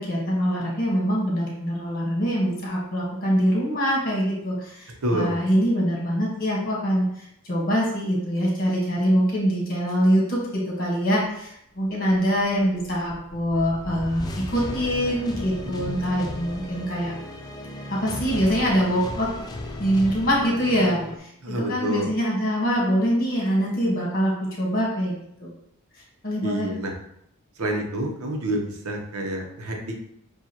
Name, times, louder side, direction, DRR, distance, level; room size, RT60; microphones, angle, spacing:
voice 1, 0.0-7.1 7.5-17.1 17.9-19.3 19.8-25.1 25.4-25.5 26.2-26.7, equal, 40° left, -3 dB, 1.5 m, -24 dB
voice 2, 5.0-5.4 15.6-16.0 21.4-22.1 26.4-26.9 27.6-30.0, right 1 dB, 80° right, 2 dB, 0.9 m, -28 dB
sound 1, 12.1-21.2, left 1 dB, 20° left, 0.4 m, -36 dB
7.1 x 2.4 x 2.9 m, 0.74 s
head